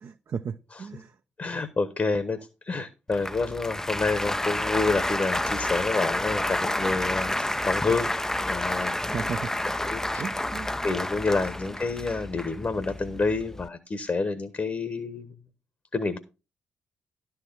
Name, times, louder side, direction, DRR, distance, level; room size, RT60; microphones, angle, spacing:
voice 1, 0.0-1.1 9.0-9.5 10.2-10.7, right 6 dB, 50° right, 0.6 m, -35 dB
voice 2, 1.4-8.1 8.4-8.9 9.8-10.2 10.8-15.4 15.9-16.2, left 3 dB, 40° left, 1.2 m, -28 dB
Applause, 3.1-13.7, left 1 dB, 10° left, 0.4 m, -30 dB
11.5 x 4.7 x 5.5 m
hypercardioid pair, 40°, 6 cm